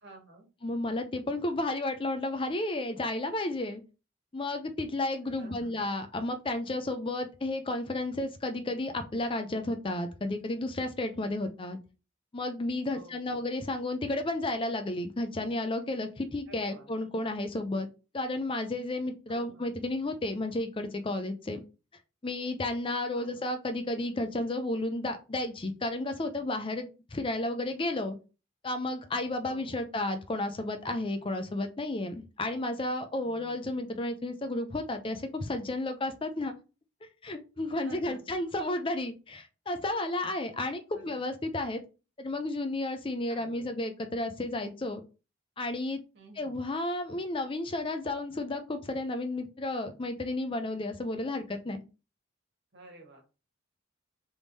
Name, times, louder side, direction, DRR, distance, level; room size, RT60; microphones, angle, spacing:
voice 1, 0.0-0.5 5.4-5.7 12.9-13.4 16.5-16.9 19.3-19.7 23.1-23.5 29.5-29.8 33.2-33.7 37.8-38.4 40.9-41.2 43.3-43.7 46.1-46.6 52.7-53.2, right 2 dB, 60° right, 1 dB, 1.5 m, -51 dB
voice 2, 0.6-3.8 4.3-11.8 12.3-17.9 18.1-21.6 22.2-28.2 28.6-36.6 37.0-41.8 42.2-45.0 45.6-46.0 46.4-51.8, left 2 dB, 25° left, 7 dB, 0.5 m, -32 dB
3.5 x 3.2 x 4.0 m, 0.31 s
head